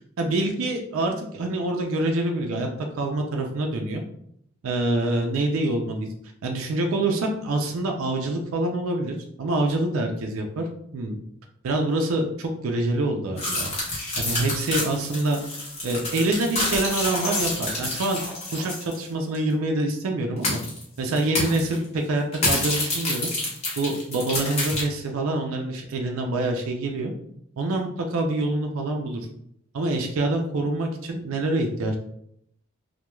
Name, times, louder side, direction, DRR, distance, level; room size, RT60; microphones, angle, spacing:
voice 1, 0.2-2.7 2.9-4.0 4.6-6.1 6.4-10.7 10.9-11.2 11.6-13.7 14.2-15.4 15.8-18.2 18.5-20.6 21.0-23.3 23.8-27.1 27.6-29.2 29.7-32.0, right 2 dB, 80° right, 3 dB, 0.4 m, -26 dB
sound 1, 13.4-19.0 19.3-19.4 20.4-20.8 21.2-21.8 22.3-24.8, left 2 dB, 30° left, 0.7 m, -28 dB
2.9 x 2.2 x 2.2 m, 0.71 s
head